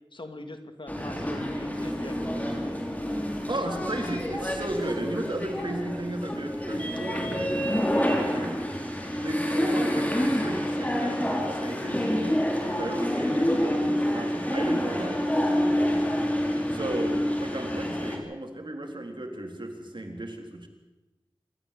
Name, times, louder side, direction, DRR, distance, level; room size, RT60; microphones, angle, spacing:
voice 1, 0.1-2.4, left 2 dB, 60° left, 7 dB, 2.4 m, -42 dB
sound 1, 0.9-18.2, equal, 15° left, 4.4 m, -28 dB
voice 2, 3.5-8.6 9.2-16.0 16.7-20.7, right 1 dB, 60° right, 3 dB, 3.9 m, -35 dB
26.5 x 13.5 x 8.4 m, 1.1 s
wide cardioid pair, 50°, 9 cm